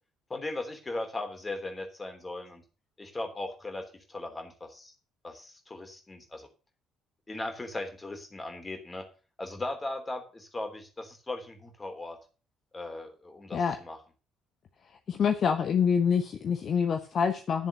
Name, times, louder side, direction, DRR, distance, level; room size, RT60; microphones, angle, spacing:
voice 1, 0.3-2.6 3.0-4.9 5.2-6.5 7.3-9.1 9.4-12.2 12.7-14.0, left 2 dB, 20° left, 5 dB, 3.2 m, -38 dB
voice 2, 15.1-17.7, left 6 dB, 45° left, 7 dB, 1.0 m, -26 dB
11.5 x 7.0 x 6.7 m, 0.35 s
figure-of-eight pair, 50°, 0 cm